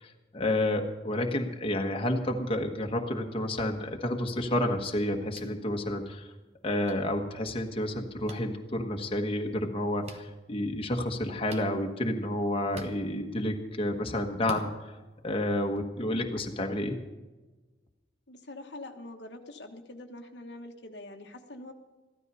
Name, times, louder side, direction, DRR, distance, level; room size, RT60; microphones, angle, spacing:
voice 1, 0.0-6.3 6.6-14.7 15.2-17.0, left 1 dB, 30° left, 3 dB, 1.3 m, -30 dB
sound 1, 5.3-5.5 6.8-6.9 8.3-8.4 10.0-10.2 11.5-11.7 12.7-12.9 14.4-14.7, right 3 dB, 35° right, 1.1 m, -44 dB
voice 2, 18.3-21.7, left 2 dB, 70° left, 4 dB, 1.3 m, -44 dB
15.0 x 12.5 x 5.5 m, 1.2 s
head